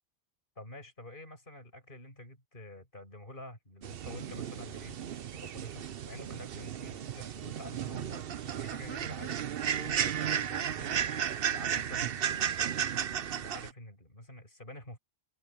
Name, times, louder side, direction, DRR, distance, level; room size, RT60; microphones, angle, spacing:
voice 1, 0.6-5.0 5.3-9.4 9.7-12.9 13.3-15.0, left 1 dB, 55° left, 7.1 m, -48 dB
sound 1, 3.8-13.7, right 9 dB, 65° right, 0.9 m, -34 dB
open air
omnidirectional pair, 1.1 m